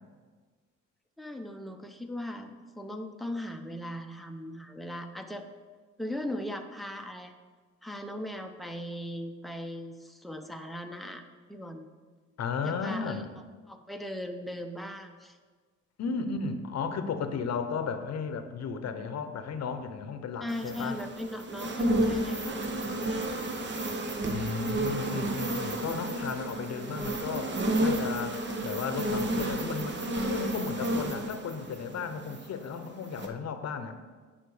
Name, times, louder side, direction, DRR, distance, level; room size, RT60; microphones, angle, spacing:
voice 1, 1.2-5.5 6.0-7.3 7.8-11.9 12.6-13.2 13.7-15.4 20.4-23.2, left 1 dB, ahead, 4 dB, 0.8 m, -38 dB
voice 2, 12.4-13.3 16.0-21.0 24.2-34.0, left 5 dB, 60° left, 8 dB, 0.9 m, -34 dB
sound 1, 20.5-32.7 33.1-33.3, right 1 dB, 40° right, 1.1 m, -31 dB
9.2 x 5.8 x 4.9 m, 1.4 s
cardioid pair, 90°, 30 cm